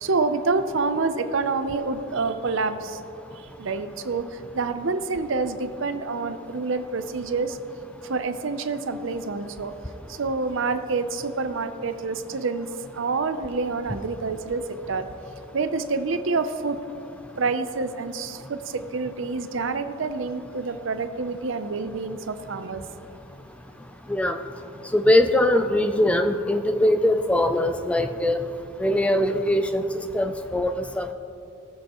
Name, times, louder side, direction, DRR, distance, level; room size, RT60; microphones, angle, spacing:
voice 1, 0.0-3.0 3.6-4.3 4.5-7.6 8.1-9.7 10.1-12.7 12.9-15.1 15.5-16.8 17.4-22.8, right 4 dB, 65° right, 9 dB, 0.6 m, -27 dB
voice 2, 24.9-28.4 28.8-29.8 30.1-31.1, left 1 dB, 5° left, 7 dB, 0.3 m, -21 dB
19.0 x 7.7 x 3.0 m, 2.8 s
head